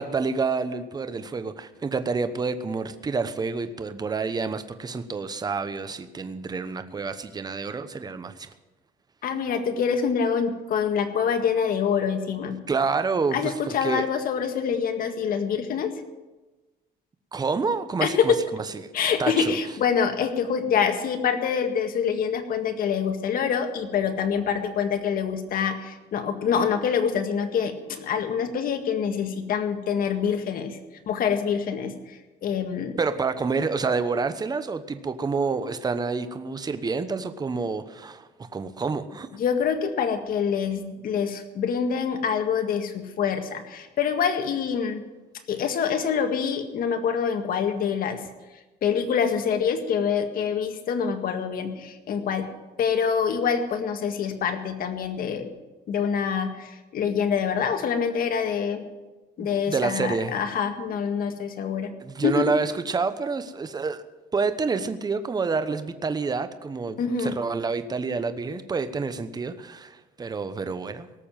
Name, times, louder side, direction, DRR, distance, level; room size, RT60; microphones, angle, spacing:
voice 1, 0.0-8.5 12.7-13.5 13.8-14.1 17.3-18.9 19.2-19.5 33.0-39.3 59.4-60.3 62.0-64.0 64.3-71.1, right 4 dB, 25° right, 10 dB, 1.0 m, -28 dB
voice 2, 9.2-12.6 13.3-15.9 18.0-18.4 18.9-30.8 31.1-33.0 39.3-45.0 45.5-48.2 48.8-52.5 52.8-55.5 55.9-58.8 59.4-61.9 62.2-62.4 67.0-67.4, left 7 dB, 60° left, 6 dB, 1.9 m, -26 dB
18.5 x 6.9 x 9.1 m, 1.1 s
cardioid pair, 110°, 17 cm